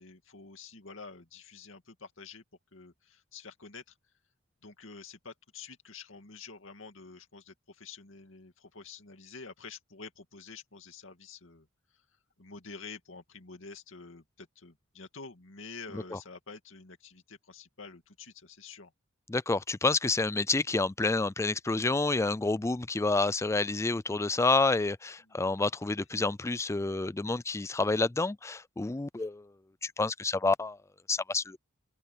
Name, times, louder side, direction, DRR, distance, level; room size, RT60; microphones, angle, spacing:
voice 1, 0.0-2.4 2.7-4.0 4.6-11.7 12.4-18.9 25.2-25.6 29.2-29.3, left 4 dB, 70° left, 2.5 m, -48 dB
voice 2, 19.3-29.5 29.8-30.8 31.1-31.6, left 3 dB, 15° left, 0.4 m, -29 dB
open air
head